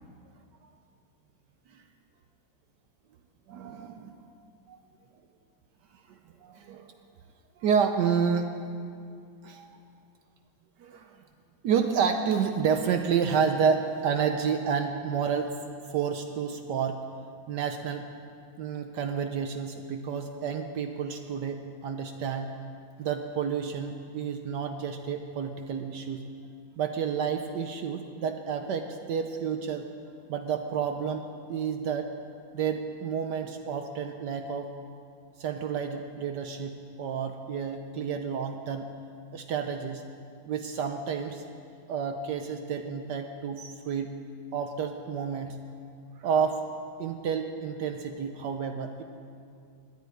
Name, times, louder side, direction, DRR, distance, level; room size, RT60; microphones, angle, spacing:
voice 1, 3.5-4.1 4.7-4.8 6.4-6.9 7.6-8.5 9.4-9.7 10.8-11.1 11.6-15.5 15.9-17.0 17.5-18.1 18.6-22.5 23.0-26.2 26.8-29.9 30.3-32.1 32.5-34.7 35.4-38.9 39.3-40.0 40.5-41.4 41.9-44.1 44.5-45.6 46.2-46.6 47.0-49.0, right 6 dB, 70° right, 6 dB, 1.1 m, -30 dB
10.5 x 9.1 x 9.5 m, 2.3 s
omnidirectional pair, 2.2 m